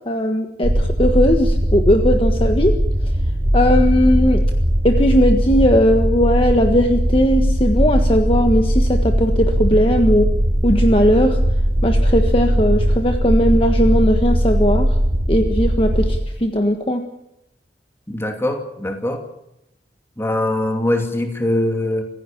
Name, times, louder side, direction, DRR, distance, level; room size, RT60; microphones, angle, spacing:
voice 1, 0.1-2.7 3.5-4.4 4.8-10.3 10.6-11.4 11.8-14.9 15.3-17.0, equal, 30° left, 4 dB, 1.5 m, -17 dB
sound 1, 0.6-16.2, equal, 45° right, 3.7 m, -18 dB
voice 2, 18.1-19.2 20.2-22.0, left 1 dB, 15° left, 4 dB, 2.7 m, -22 dB
26.0 x 16.0 x 7.4 m, 0.84 s
head